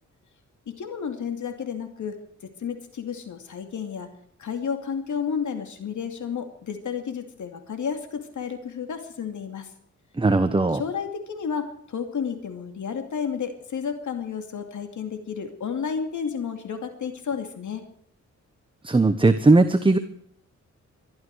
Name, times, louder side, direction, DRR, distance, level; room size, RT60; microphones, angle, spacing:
voice 1, 0.7-2.2 2.6-4.1 4.4-9.7 10.7-17.8, left 6 dB, 80° left, 6 dB, 2.5 m, -31 dB
voice 2, 10.2-10.8 18.8-20.0, right 3 dB, 15° right, 9 dB, 1.1 m, -18 dB
23.0 x 13.0 x 4.8 m, 0.66 s
wide cardioid pair, 120°, 30 cm